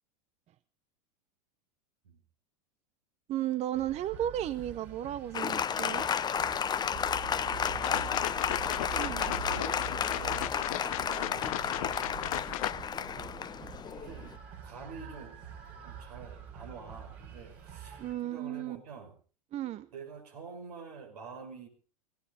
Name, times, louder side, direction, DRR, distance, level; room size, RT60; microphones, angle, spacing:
voice 1, 3.3-6.1 8.9-9.3 18.0-18.8 19.5-19.9, right 12 dB, 30° right, 16 dB, 0.7 m, -34 dB
sound 1, 3.7-18.2, right 8 dB, 50° right, 5.9 m, -45 dB
Applause, 5.3-14.3, left 8 dB, 20° left, 0.6 m, -32 dB
voice 2, 7.3-13.2 14.0-14.4 14.6-15.4 15.8-19.2 19.9-21.7, right 5 dB, 70° right, 3 dB, 5.5 m, -48 dB
sound 2, 7.6-12.7, left 17 dB, 60° left, 0.7 m, -36 dB
18.0 x 16.5 x 3.9 m, 0.38 s
hypercardioid pair, 90°, 21 cm